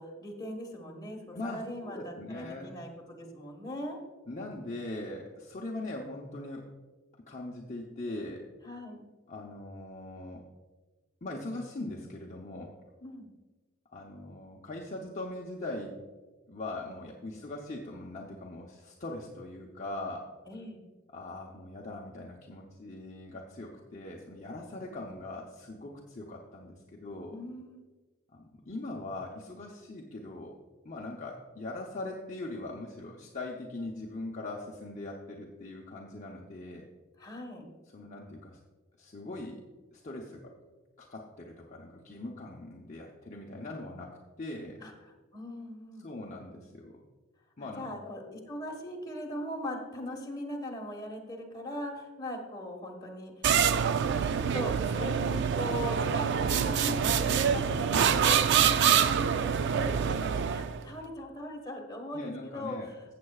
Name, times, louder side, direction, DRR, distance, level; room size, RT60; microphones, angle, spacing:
voice 1, 0.0-4.0 8.6-9.0 13.0-13.3 20.5-20.8 27.3-27.8 37.2-37.6 44.8-46.1 47.6-53.4 53.9-63.0, equal, 20° left, 0 dB, 1.5 m, -40 dB
voice 2, 1.3-2.7 4.3-6.7 7.3-8.5 9.3-10.4 11.2-12.8 13.9-15.9 16.5-20.3 21.1-27.4 28.3-30.5 30.8-36.9 37.9-38.6 39.0-39.6 39.9-40.5 41.0-44.8 46.0-47.0 47.6-48.1 62.1-62.9, left 2 dB, 35° left, -2 dB, 0.8 m, -41 dB
sound 1, 53.4-60.8, right 7 dB, 60° right, 0.4 m, -26 dB
15.0 x 7.6 x 2.4 m, 1.3 s
head